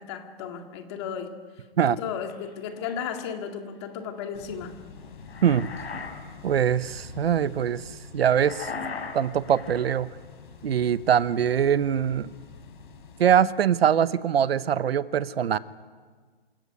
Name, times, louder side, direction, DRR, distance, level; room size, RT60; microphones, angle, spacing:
voice 1, 0.0-1.3 1.8-4.8, left 7 dB, 25° left, 5 dB, 2.1 m, -34 dB
sound 1, 2.3-3.2 5.0-6.2 6.5-6.8 8.3-10.0, left 5 dB, 90° left, 6.2 m, -38 dB
sound 2, 4.3-13.4, left 5 dB, 55° left, 3.8 m, -47 dB
voice 2, 6.4-8.7 9.1-10.1 10.6-12.3 13.2-15.6, right 9 dB, 75° right, 15 dB, 1.0 m, -23 dB
27.0 x 17.0 x 9.6 m, 1.5 s
hypercardioid pair, 170°, 31 cm